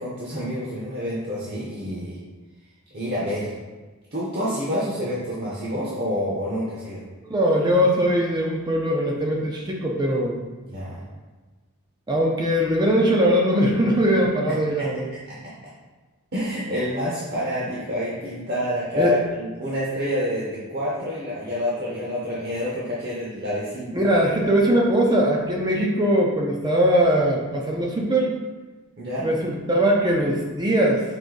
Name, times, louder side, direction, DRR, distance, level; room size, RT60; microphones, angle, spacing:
voice 1, 0.0-2.2 2.9-3.5 4.1-7.0 10.7-11.0 14.7-14.9 15.3-15.5 16.3-23.9 29.0-29.3, left 1 dB, 45° right, -7 dB, 0.9 m, -28 dB
voice 2, 7.2-10.4 12.1-15.1 19.0-19.1 23.9-28.3 29.2-31.0, equal, 20° right, -1 dB, 0.4 m, -21 dB
4.9 x 2.7 x 3.8 m, 1.3 s
head